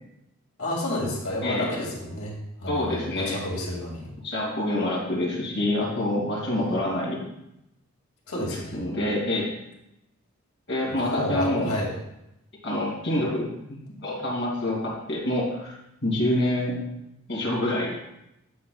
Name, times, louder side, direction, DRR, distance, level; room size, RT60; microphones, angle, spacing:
voice 1, 0.6-2.3 2.6-4.1 8.3-8.8 11.0-11.9, left 1 dB, 80° left, -4 dB, 2.3 m, -30 dB
voice 2, 1.4-1.7 2.7-3.4 4.2-7.2 8.4-9.5 10.7-11.8 12.6-15.7 16.0-16.7 17.3-18.0, left 1 dB, 55° left, -4 dB, 2.4 m, -27 dB
9.4 x 6.1 x 2.3 m, 0.85 s
head